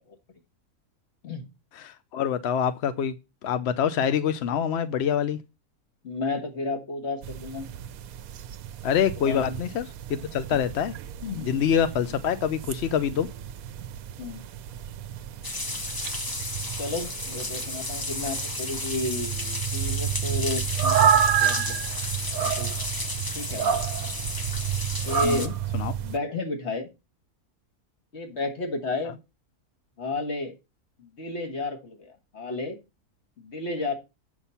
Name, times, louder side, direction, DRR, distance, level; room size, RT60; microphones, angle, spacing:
voice 1, 1.8-3.1 3.4-5.4 8.8-10.9 11.5-13.3 25.2-25.9, left 8 dB, 60° left, 0.7 m, -26 dB
voice 2, 6.0-7.7 9.2-9.6 11.2-11.5 14.2-14.4 16.8-21.8 22.4-22.7 23.4-23.8 25.1-25.6 26.0-26.9 28.1-29.1 30.0-30.6 31.0-32.8 33.4-33.9, left 2 dB, 45° left, 1.8 m, -32 dB
sound 1, 7.2-26.2, right 9 dB, 70° right, 1.0 m, -30 dB
sound 2, 15.4-25.5, left 2 dB, 20° left, 0.6 m, -33 dB
8.1 x 5.8 x 5.5 m
omnidirectional pair, 1.6 m